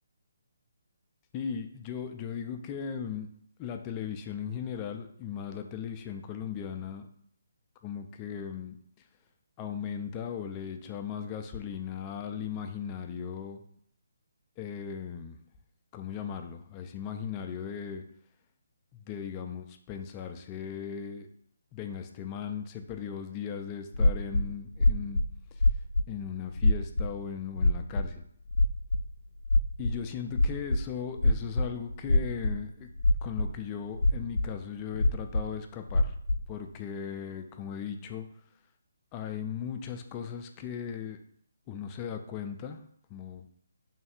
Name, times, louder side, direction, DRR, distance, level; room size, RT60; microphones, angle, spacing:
voice 1, 1.3-3.3 3.6-7.1 7.8-8.8 9.6-13.6 14.6-15.4 15.9-18.0 18.9-21.3 21.7-25.2 26.1-28.2 29.8-32.9 33.2-36.1 36.5-38.3 39.1-41.2 41.7-42.8 43.1-43.5, left 7 dB, 25° left, 6 dB, 0.3 m, -37 dB
sound 1, 23.9-25.3 25.6-26.1 26.5-27.1 27.5-28.1 28.5-29.0 29.4-30.8 31.2-32.6 33.0-33.5 33.9-34.6 34.9-35.5 35.9-36.5, left 2 dB, 80° left, 0.6 m, -24 dB
3.2 x 2.3 x 4.3 m, 0.65 s
figure-of-eight pair, 150°, 0 cm